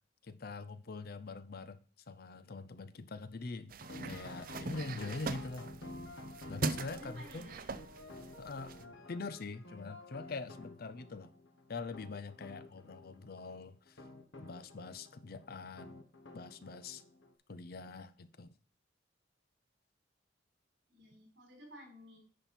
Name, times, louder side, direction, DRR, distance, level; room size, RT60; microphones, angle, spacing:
voice 1, 0.2-1.8 2.1-3.8 4.0-5.7 6.5-7.6 8.4-8.7 9.1-11.3 11.7-14.0 14.4-16.0 16.3-17.0 17.5-18.6, left 3 dB, 55° left, 0.6 m, -44 dB
sound 1, 3.7-8.8, right 4 dB, 50° right, 0.5 m, -42 dB
sound 2, 3.8-17.3, left 2 dB, 90° left, 1.3 m, -51 dB
voice 2, 6.9-7.7 20.9-22.2, equal, 65° right, 4.4 m, -54 dB
10.0 x 5.4 x 4.3 m
head